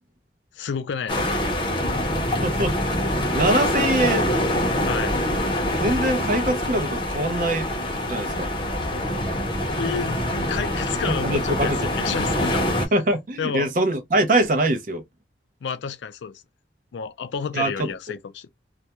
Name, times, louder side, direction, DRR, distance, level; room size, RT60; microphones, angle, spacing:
voice 1, 0.6-1.2 4.8-5.2 9.7-12.7 13.4-13.7 15.6-16.4 16.9-18.5, left 6 dB, 75° left, 0.4 m, -30 dB
sound 1, 1.1-12.9, left 1 dB, 25° left, 0.6 m, -25 dB
voice 2, 2.4-4.3 5.8-7.7 8.1-8.5 11.0-11.9 12.9-15.0 17.5-17.9, right 1 dB, 45° right, 0.5 m, -23 dB
2.3 x 2.1 x 2.8 m
head